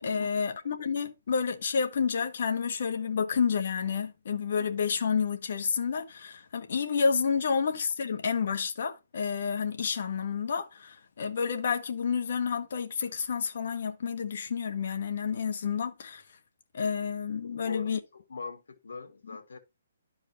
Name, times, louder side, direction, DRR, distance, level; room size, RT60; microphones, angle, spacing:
voice 1, 0.0-16.2 16.7-18.0, left 6 dB, 55° left, 1.6 m, -30 dB
voice 2, 17.6-19.6, left 4 dB, 85° left, 2.3 m, -41 dB
12.0 x 4.8 x 2.9 m
hypercardioid pair, 170°, 0 cm